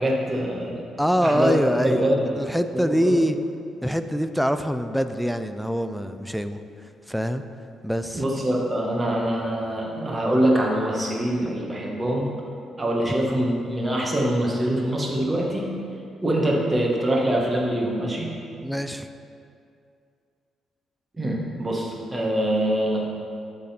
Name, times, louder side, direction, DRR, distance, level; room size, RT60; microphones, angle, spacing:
voice 1, 0.0-0.8 1.2-2.3 2.7-3.2 8.1-12.3 12.8-15.7 16.2-18.3 21.2-23.2, right 1 dB, 20° right, -2 dB, 1.4 m, -24 dB
voice 2, 1.0-2.1 2.4-3.4 3.8-6.6 7.1-7.4 7.8-8.3 11.4-11.5 18.6-19.1, equal, ahead, 9 dB, 0.4 m, -24 dB
11.5 x 4.0 x 4.3 m, 2.4 s
cardioid pair, 90°, 0 cm